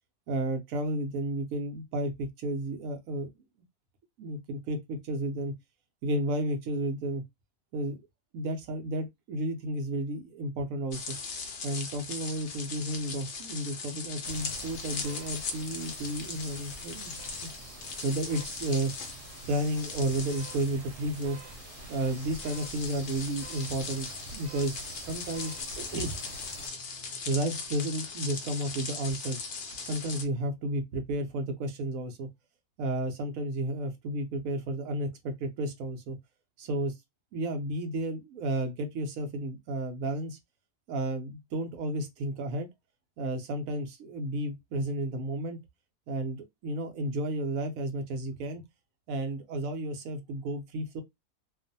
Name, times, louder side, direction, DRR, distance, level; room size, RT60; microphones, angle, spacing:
voice 1, 0.3-3.3 4.2-5.5 6.0-7.2 7.7-8.0 8.3-11.1 11.6-17.1 17.4-17.5 18.0-18.9 19.5-21.4 21.9-26.2 27.3-29.4 29.8-32.3 32.8-36.2 36.6-37.0 37.3-40.4 40.9-42.7 43.2-45.6 46.1-48.6 49.1-51.0, right 1 dB, 65° right, 0.9 m, -32 dB
sound 1, 10.9-30.2, left 4 dB, 65° left, 0.6 m, -39 dB
sound 2, 14.2-26.7, right 4 dB, 90° right, 1.2 m, -47 dB
2.5 x 2.4 x 2.6 m
omnidirectional pair, 1.7 m